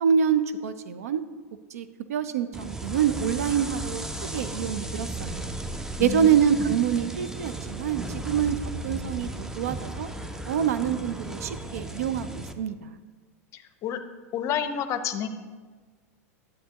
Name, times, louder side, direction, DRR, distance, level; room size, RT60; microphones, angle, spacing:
voice 1, 0.0-1.2 1.7-4.0 4.3-5.5 6.0-10.1 10.5-13.0, right 8 dB, 75° right, 12 dB, 0.5 m, -26 dB
sound 1, 2.5-12.5, right 2 dB, 5° right, 0.5 m, -35 dB
voice 2, 6.0-6.7 13.5-14.0 14.3-15.3, left 8 dB, 35° left, 10 dB, 0.6 m, -30 dB
10.0 x 7.6 x 2.9 m, 1.4 s
hypercardioid pair, 100°, 8 cm